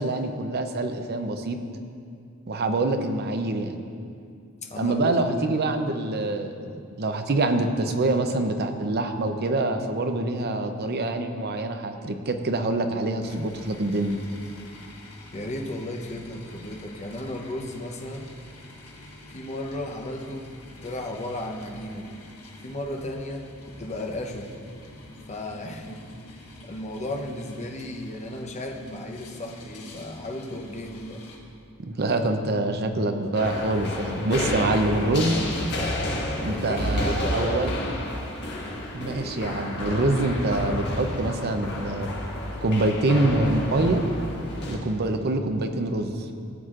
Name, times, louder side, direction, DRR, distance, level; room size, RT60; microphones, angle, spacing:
voice 1, 0.0-1.6 2.5-3.8 4.8-14.2 31.8-35.4 36.4-37.8 38.9-42.1 42.6-44.0 44.7-46.3, right 2 dB, 45° right, 6 dB, 0.6 m, -25 dB
voice 2, 4.6-5.5 15.3-18.3 19.3-20.5 20.8-22.1 22.6-24.5 25.2-31.2 36.5-38.1, left 1 dB, 30° left, 2 dB, 0.8 m, -35 dB
sound 1, 13.2-31.4, left 1 dB, 80° left, 1.4 m, -46 dB
sound 2, 33.3-44.8, left 1 dB, 50° left, 1.6 m, -30 dB
17.0 x 8.0 x 2.5 m, 2.4 s
head